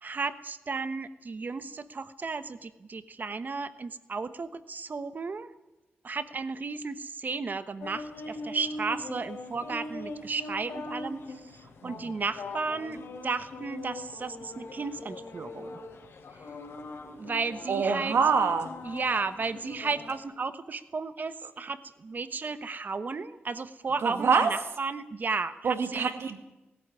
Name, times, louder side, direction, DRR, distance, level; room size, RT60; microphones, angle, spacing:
voice 1, 0.0-5.5 6.0-15.8 17.2-18.2 18.8-26.1, right 4 dB, 45° right, 12 dB, 1.1 m, -34 dB
sound 1, 7.8-20.2, left 2 dB, 85° left, 3.5 m, -42 dB
voice 2, 17.7-18.7 24.0-24.5 25.6-26.4, right 5 dB, 80° right, 7 dB, 2.3 m, -25 dB
20.5 x 14.0 x 9.7 m, 0.98 s
wide cardioid pair, 120°, 4 cm